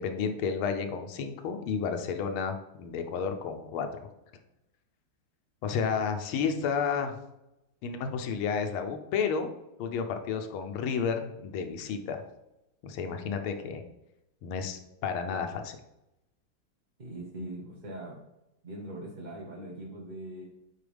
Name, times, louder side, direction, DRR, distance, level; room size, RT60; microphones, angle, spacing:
voice 1, 0.0-3.9 5.6-7.2 7.8-9.5 9.8-12.2 12.8-13.8 14.4-15.8, left 6 dB, 80° left, 6 dB, 1.6 m, -31 dB
voice 2, 17.0-18.2 18.6-20.4, right 1 dB, 30° right, -4 dB, 0.9 m, -41 dB
10.0 x 4.2 x 3.5 m, 0.90 s
omnidirectional pair, 2.3 m